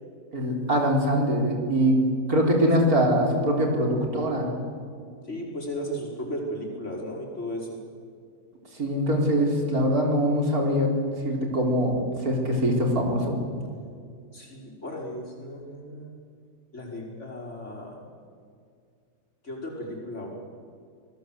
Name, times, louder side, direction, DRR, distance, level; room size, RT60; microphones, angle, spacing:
voice 1, 0.3-2.0 2.3-4.5 8.7-10.9 11.2-13.4, equal, 65° right, 0 dB, 4.8 m, -23 dB
voice 2, 5.2-7.8 14.3-16.1 16.7-18.0 19.4-20.4, equal, 45° left, -2 dB, 5.7 m, -35 dB
27.0 x 20.0 x 8.0 m, 2.3 s
omnidirectional pair, 1.7 m